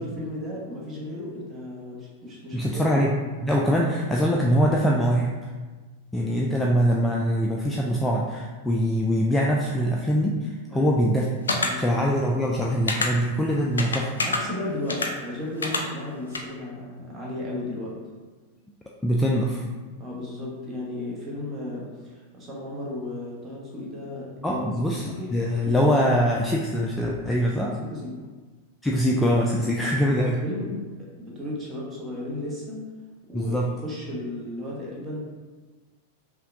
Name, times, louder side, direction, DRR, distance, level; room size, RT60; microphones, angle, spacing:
voice 1, 0.0-3.0 3.9-4.0 10.7-11.0 11.6-12.1 14.2-18.0 20.0-24.7 25.0-25.4 27.5-28.3 29.9-32.9 33.3-35.2, left 1 dB, 20° right, -5 dB, 1.1 m, -35 dB
voice 2, 2.5-3.1 3.4-5.4 6.1-11.3 11.8-14.1 19.0-19.6 24.4-27.7 28.8-30.4 33.3-33.7, equal, 10° left, -2 dB, 0.3 m, -23 dB
sound 1, 11.5-11.7 12.9-13.1 13.8-14.4 14.9-15.1 15.6-15.8 16.3-16.4, left 3 dB, 75° left, 0.4 m, -25 dB
5.6 x 2.2 x 2.6 m, 1.3 s
figure-of-eight pair, 90°, 0 cm